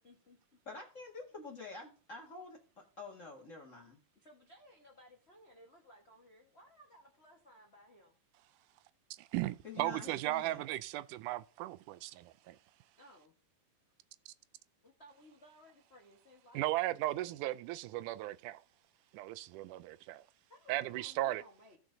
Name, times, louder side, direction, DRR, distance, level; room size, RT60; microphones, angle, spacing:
voice 1, 0.0-0.6 4.1-8.1 13.0-13.3 14.8-17.4 20.5-21.8, equal, 85° left, 0.5 m, -60 dB
voice 2, 0.6-4.0 9.6-10.7, left 3 dB, 35° left, 1.5 m, -48 dB
voice 3, 9.2-12.6 16.5-18.6 19.1-20.2 20.7-21.4, right 16 dB, 90° right, 2.1 m, -36 dB
16.5 x 5.9 x 2.7 m
omnidirectional pair, 3.5 m